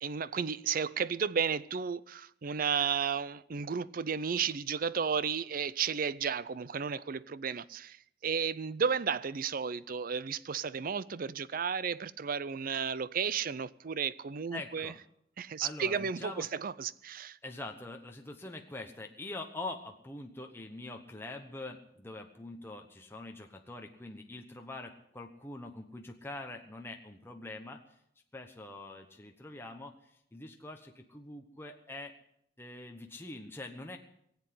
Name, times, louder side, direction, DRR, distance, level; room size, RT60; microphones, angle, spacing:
voice 1, 0.0-8.0 8.2-14.9 15.4-17.4, right 6 dB, 50° right, 0.5 m, -33 dB
voice 2, 14.5-15.0 15.6-16.5 17.4-28.0 28.3-32.1 32.6-34.0, left 2 dB, 15° left, 1.0 m, -44 dB
18.5 x 8.1 x 9.4 m
head